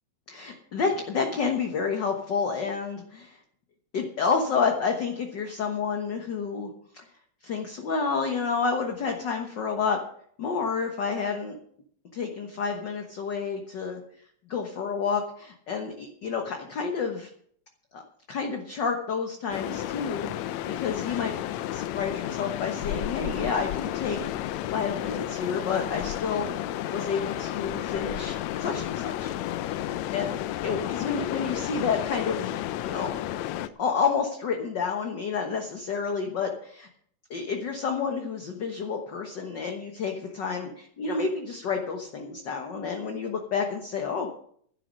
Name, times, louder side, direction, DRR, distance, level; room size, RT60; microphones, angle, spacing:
voice 1, 0.3-3.4 3.9-7.0 7.4-10.0 10.4-11.6 12.1-14.0 14.5-17.3 17.9-18.0 18.3-21.3 21.7-24.2 24.7-26.5 26.9-29.3 29.7-30.3 30.6-32.5 32.8-33.2 33.8-36.9 37.3-44.3, left 5 dB, 50° left, 3 dB, 1.5 m, -29 dB
sound 1, 19.5-33.7, left 13 dB, 75° left, 1.8 m, -32 dB
12.0 x 10.5 x 6.3 m, 0.62 s
omnidirectional pair, 3.3 m